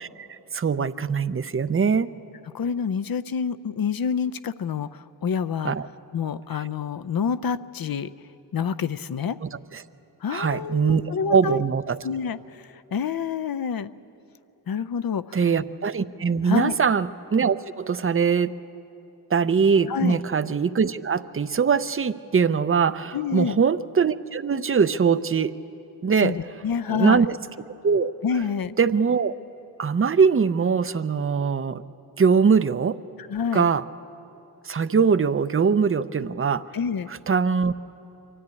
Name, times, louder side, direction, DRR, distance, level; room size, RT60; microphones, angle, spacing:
voice 1, 0.0-2.1 5.6-5.9 9.4-9.8 10.3-12.0 15.3-18.6 19.3-25.6 26.0-26.4 26.9-27.4 27.8-28.1 28.8-29.3 29.8-31.8 32.2-33.0 33.5-33.8 34.6-36.6 37.1-37.7, right 6 dB, 35° right, 14 dB, 0.5 m, -22 dB
voice 2, 2.5-5.7 6.1-8.1 8.5-9.4 10.2-11.6 12.0-13.9 14.7-15.4 16.4-16.8 19.9-20.2 23.1-23.6 26.2-27.2 28.2-28.8 33.3-33.6 36.7-37.1, left 6 dB, 55° left, 13 dB, 0.6 m, -27 dB
24.5 x 13.5 x 9.7 m, 2.9 s
wide cardioid pair, 115°, 41 cm